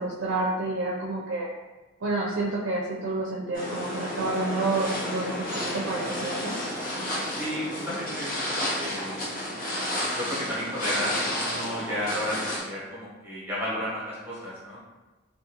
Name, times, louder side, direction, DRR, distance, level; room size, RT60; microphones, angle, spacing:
voice 1, 0.0-1.5 2.0-6.5, right 2 dB, 65° right, -4 dB, 0.4 m, -29 dB
sound 1, 3.5-12.6, left 1 dB, 45° left, 0.7 m, -31 dB
voice 2, 7.3-9.2 10.2-14.8, equal, 10° right, -7 dB, 0.8 m, -33 dB
2.5 x 2.3 x 2.8 m, 1.2 s
head